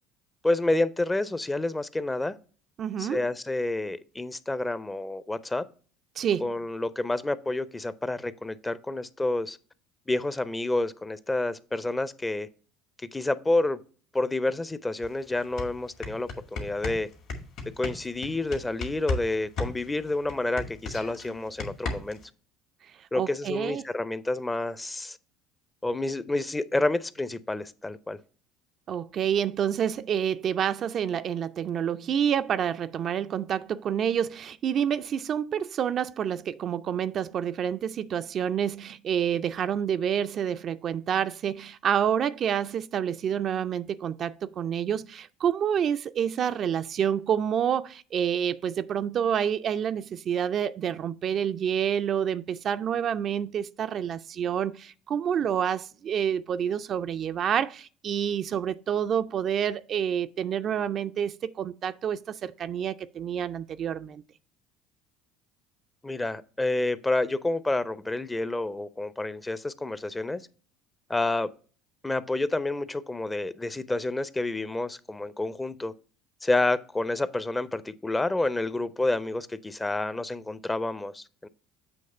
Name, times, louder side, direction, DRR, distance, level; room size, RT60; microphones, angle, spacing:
voice 1, 0.4-2.4 3.0-5.6 6.4-9.6 10.1-12.5 13.1-13.8 14.1-17.1 17.8-22.2 23.1-25.2 25.8-28.2 66.0-70.4 71.1-71.5 72.0-75.9 76.4-81.5, left 2 dB, 15° left, 0.5 m, -29 dB
voice 2, 2.8-3.2 6.2-6.5 23.1-23.9 28.9-64.2, right 8 dB, 45° right, 0.3 m, -28 dB
sound 1, 15.0-15.1 15.4-19.3 19.6-22.3, left 3 dB, 65° left, 1.8 m, -34 dB
7.8 x 3.0 x 5.4 m
hypercardioid pair, 70°, 0 cm